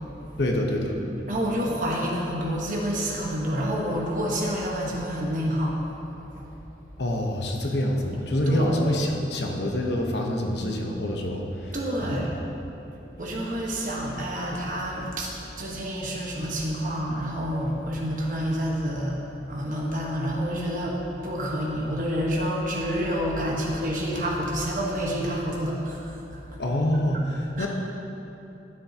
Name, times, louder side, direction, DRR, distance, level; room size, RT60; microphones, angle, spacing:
voice 1, 0.4-1.0 7.0-11.8 12.0-12.3 26.6-27.7, left 1 dB, 80° left, 1 dB, 1.0 m, -26 dB
voice 2, 1.3-5.8 6.3-6.5 8.5-8.7 11.7-12.3 13.2-21.0 21.2-26.4 27.1-27.2 27.5-27.7, equal, 45° right, -3 dB, 1.3 m, -28 dB
12.5 x 7.2 x 2.8 m, 3.0 s
head